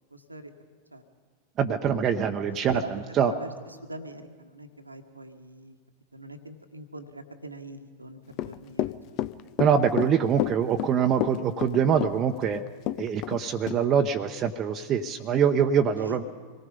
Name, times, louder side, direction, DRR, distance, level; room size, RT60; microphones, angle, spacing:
voice 1, 0.1-0.5 0.9-1.0 2.7-2.9 3.3-5.8 6.1-8.2 8.4-9.2 15.9-16.2, right 1 dB, 85° right, 6 dB, 1.6 m, -42 dB
voice 2, 1.6-3.3 9.6-12.6 13.0-16.2, right 7 dB, 30° right, 5 dB, 0.9 m, -24 dB
Run / Walk footsteps, 8.3-13.4 13.7-13.8, left 14 dB, 40° left, 0.6 m, -30 dB
25.5 x 19.0 x 5.4 m, 1.5 s
figure-of-eight pair, 90°, 0 cm